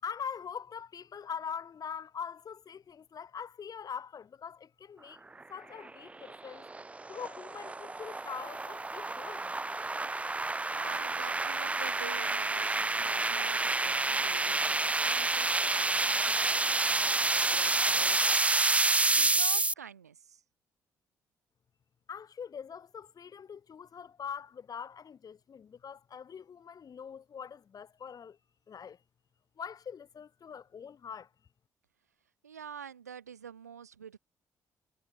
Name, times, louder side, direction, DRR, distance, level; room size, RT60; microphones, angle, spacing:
voice 1, 0.0-5.2 5.5-6.7 7.1-9.5 22.1-28.4 28.7-29.0 29.6-31.3, left 7 dB, 45° left, 6.9 m, -43 dB
sound 1, 5.8-19.7, right 3 dB, 15° right, 0.5 m, -29 dB
voice 2, 10.7-20.4 32.4-34.2, right 7 dB, 85° right, 4.1 m, -47 dB
figure-of-eight pair, 40°, 8 cm